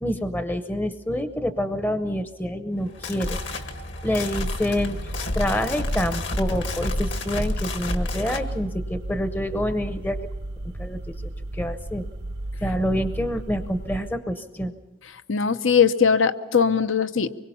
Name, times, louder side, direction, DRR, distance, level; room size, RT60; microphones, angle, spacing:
voice 1, 0.0-3.4 4.0-10.2 10.8-11.0 11.5-12.0 12.6-14.7, equal, 10° left, 9 dB, 0.7 m, -27 dB
sound 1, 2.8-8.5, left 2 dB, 65° left, 1.9 m, -30 dB
sound 2, 4.7-14.1, right 1 dB, 55° right, 0.6 m, -34 dB
voice 2, 15.3-17.3, left 6 dB, 80° left, 11 dB, 0.9 m, -20 dB
25.0 x 22.5 x 5.6 m, 1.2 s
head